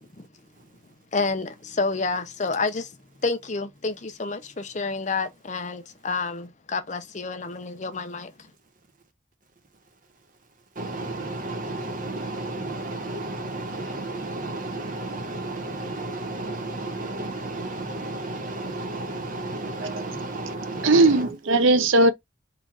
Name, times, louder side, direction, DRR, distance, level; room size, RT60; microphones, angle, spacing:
voice 1, 1.1-2.9 3.2-8.3, left 4 dB, 40° left, 0.7 m, -29 dB
voice 2, 10.8-21.3, right 2 dB, 45° right, 1.1 m, -32 dB
voice 3, 20.8-22.1, right 2 dB, 90° right, 0.7 m, -18 dB
3.9 x 2.5 x 4.6 m
head